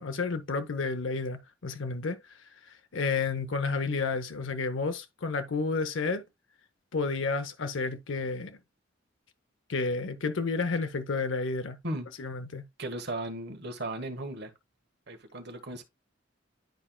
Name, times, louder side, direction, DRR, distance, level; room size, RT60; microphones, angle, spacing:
voice 1, 0.0-2.2 2.9-6.2 6.9-8.6 9.7-11.8 12.2-12.6, left 4 dB, 75° left, 0.7 m, -31 dB
voice 2, 12.8-14.5 15.1-15.8, right 1 dB, 60° right, 1.3 m, -36 dB
10.5 x 4.4 x 2.2 m
head